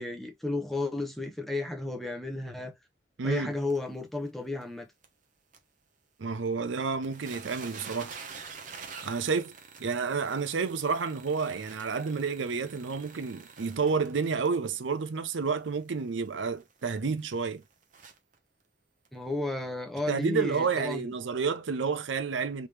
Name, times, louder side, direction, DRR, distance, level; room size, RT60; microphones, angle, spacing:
voice 1, 0.0-2.7 3.2-4.9 19.1-21.1, left 2 dB, ahead, 0.7 m, -33 dB
voice 2, 3.2-3.5 6.2-8.2 9.0-9.5 9.8-17.6 20.1-22.7, right 5 dB, 85° right, 0.5 m, -30 dB
sound 1, 3.7-3.8 4.3-4.4 4.6-4.7 5.0-5.1 5.5-5.6 6.5-6.6 6.8-18.4 19.0-19.1 19.6-19.7, right 5 dB, 45° right, 0.8 m, -47 dB
3.4 x 2.9 x 3.2 m
head